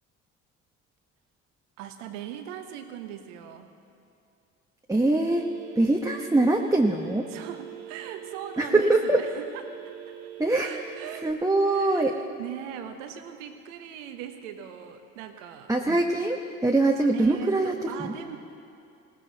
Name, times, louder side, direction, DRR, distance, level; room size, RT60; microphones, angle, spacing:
voice 1, 1.8-3.7 7.3-9.6 10.6-16.0 17.1-18.4, right 9 dB, 75° right, 7 dB, 1.3 m, -39 dB
voice 2, 4.9-5.5 5.8-7.3 8.6-9.2 10.4-10.9 11.2-12.1 15.7-16.4 16.6-18.1, right 2 dB, 10° right, 1 dB, 1.1 m, -23 dB
Telephone, 5.3-11.3, right 14 dB, 45° right, 1.5 m, -43 dB
19.5 x 17.0 x 4.1 m, 2.6 s
hypercardioid pair, 60°, 37 cm